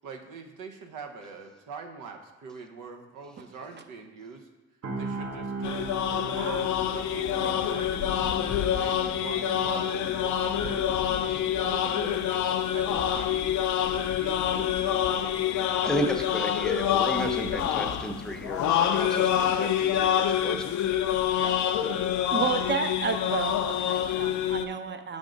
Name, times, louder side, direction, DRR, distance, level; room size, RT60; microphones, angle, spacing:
voice 1, 0.0-4.5 5.0-8.3 8.7-12.3 12.7-15.4 21.3-21.6 22.4-22.6, right 4 dB, 85° right, 4 dB, 0.8 m, -43 dB
sound 1, 4.8-18.8 19.2-19.4, right 3 dB, 55° right, 1.0 m, -42 dB
sound 2, 5.6-24.7, left 10 dB, 70° left, 0.5 m, -27 dB
voice 2, 15.8-20.7, equal, ahead, 4 dB, 0.6 m, -33 dB
voice 3, 22.3-25.2, right 6 dB, 35° right, 8 dB, 0.6 m, -31 dB
6.5 x 3.6 x 5.1 m, 1.1 s
cardioid pair, 90°, 30 cm